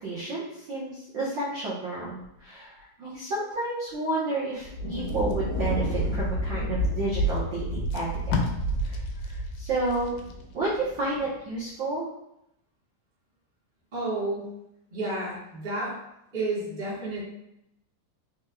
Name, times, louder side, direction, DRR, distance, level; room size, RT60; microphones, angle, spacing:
voice 1, 0.0-8.1 8.8-10.2 10.5-12.1, right 2 dB, 80° right, -8 dB, 1.0 m, -31 dB
Thunder, 4.6-11.2, right 1 dB, 35° left, 1.0 m, -30 dB
Packing tape duct tape, 4.9-6.6 7.3-7.4 7.7-10.7 11.1-11.3, left 4 dB, 75° left, 1.9 m, -36 dB
voice 2, 13.9-14.5 14.9-16.0 16.3-17.2, right 2 dB, 45° right, -7 dB, 0.5 m, -31 dB
4.5 x 4.5 x 2.3 m, 0.81 s
omnidirectional pair, 3.8 m